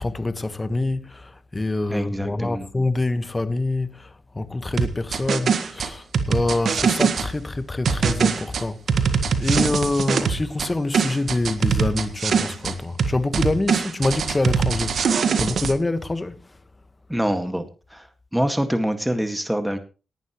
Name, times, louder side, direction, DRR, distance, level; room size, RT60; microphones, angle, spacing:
voice 1, 0.0-16.4, left 2 dB, 25° left, 1.4 m, -26 dB
voice 2, 1.9-2.7 17.1-18.1 18.3-19.8, equal, 5° right, 2.0 m, -25 dB
sound 1, 4.8-7.3 7.8-10.7 10.9-12.7 13.0-15.7, right 6 dB, 65° right, 1.6 m, -22 dB
18.0 x 11.0 x 3.2 m
cardioid pair, 60°, 0 cm